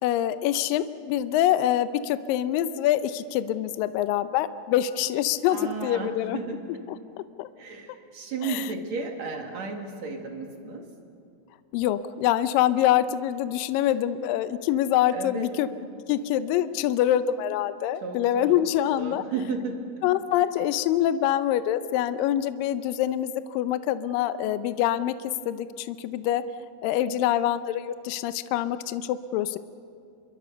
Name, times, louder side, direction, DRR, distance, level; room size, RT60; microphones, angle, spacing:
voice 1, 0.0-6.4 6.9-7.0 7.4-7.5 8.4-8.7 11.7-15.7 16.1-19.2 20.0-25.1 25.5-26.4 26.8-29.6, left 12 dB, 80° left, 12 dB, 2.1 m, -25 dB
voice 2, 5.5-6.6 7.6-10.9 15.1-15.5 18.0-18.5 19.0-19.9, right 4 dB, 50° right, 3 dB, 2.9 m, -33 dB
27.5 x 22.5 x 6.8 m, 2.4 s
omnidirectional pair, 4.5 m